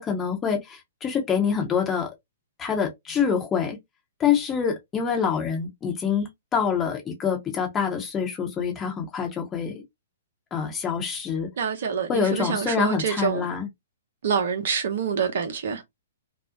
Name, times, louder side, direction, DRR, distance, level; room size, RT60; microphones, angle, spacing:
voice 1, 0.0-2.1 2.6-3.8 4.2-9.8 10.5-11.5 12.1-13.7, left 7 dB, 20° left, 0.7 m, -26 dB
voice 2, 11.6-13.5 14.2-15.8, right 6 dB, 60° right, 0.7 m, -26 dB
2.5 x 2.0 x 2.5 m
figure-of-eight pair, 120°, 0 cm